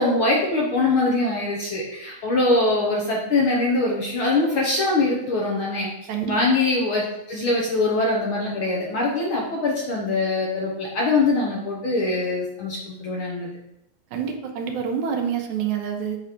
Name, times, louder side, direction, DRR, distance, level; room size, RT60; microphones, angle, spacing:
voice 1, 0.0-5.9 6.3-13.5, left 2 dB, 60° left, -3 dB, 1.4 m, -23 dB
voice 2, 14.1-16.2, right 7 dB, 80° right, 3 dB, 2.2 m, -27 dB
8.7 x 3.3 x 5.1 m, 0.84 s
omnidirectional pair, 3.4 m